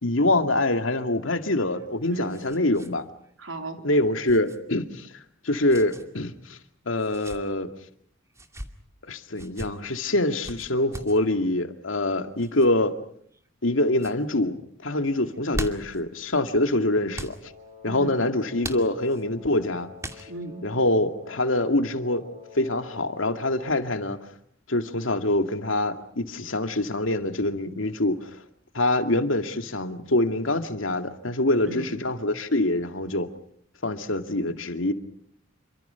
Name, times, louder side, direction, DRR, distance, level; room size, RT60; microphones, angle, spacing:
voice 1, 0.0-3.1 3.8-6.6 6.9-7.7 9.1-13.0 13.6-14.6 14.8-17.4 17.8-19.9 20.2-20.3 20.6-22.3 22.5-24.2 24.7-28.4 28.7-33.3 33.8-34.9, left 1 dB, 85° left, 2.3 m, -25 dB
sound 1, 1.6-2.9 3.2-3.3 4.3-4.6 5.7-6.0 7.0-7.4 8.3-8.7 9.3-9.7 10.4-11.2 12.4-12.7 13.3-13.7 13.9-14.2 15.2-16.0 17.1-17.4 18.6-19.2 20.0-20.5, right 1 dB, 15° right, 2.4 m, -38 dB
voice 2, 2.0-2.4 3.4-3.8 17.9-18.2 20.3-20.7 31.6-31.9, right 2 dB, 85° right, 3.6 m, -36 dB
Wind instrument woodwind instrument, 17.4-24.2, left 6 dB, 45° right, 7.1 m, -48 dB
28.0 x 25.0 x 5.8 m
head